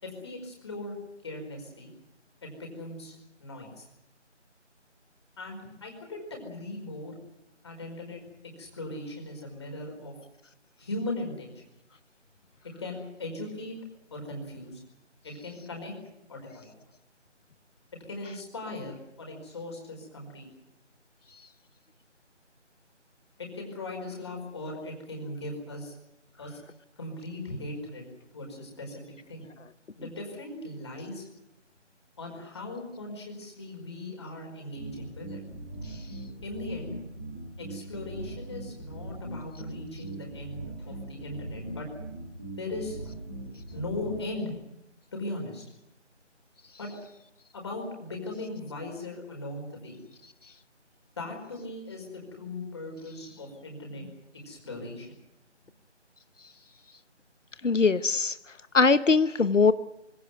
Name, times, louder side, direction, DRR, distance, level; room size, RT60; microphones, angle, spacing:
voice 1, 0.0-0.9 1.2-1.9 2.4-3.1 3.4-3.9 5.4-7.1 7.6-8.3 8.6-10.1 10.8-11.6 12.8-13.7 14.1-14.8 15.2-15.9 16.3-16.7 18.1-20.5 23.4-25.9 26.4-26.6 27.0-28.0 28.3-29.5 29.9-31.2 32.2-35.4 36.4-36.9 37.6-41.9 42.6-43.0 43.7-44.5 45.1-45.6 46.8-46.9 47.5-50.0 51.2-54.1 54.4-55.1, left 2 dB, 20° left, 1 dB, 4.9 m, -38 dB
sound 1, 34.8-44.2, right 1 dB, 10° right, 1.5 m, -40 dB
voice 2, 57.6-58.3 58.7-59.7, left 4 dB, 85° left, 14 dB, 1.0 m, -21 dB
24.0 x 17.0 x 9.3 m, 0.86 s
figure-of-eight pair, 165°, 36 cm